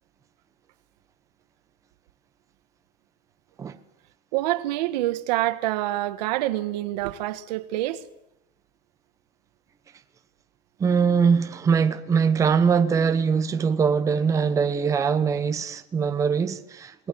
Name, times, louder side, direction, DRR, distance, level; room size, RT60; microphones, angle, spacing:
voice 1, 4.3-8.0, right 16 dB, 80° right, 1.7 m, -26 dB
voice 2, 10.8-16.9, right 6 dB, 15° right, 1.0 m, -22 dB
27.5 x 20.5 x 8.6 m
cardioid pair, 175°, 21 cm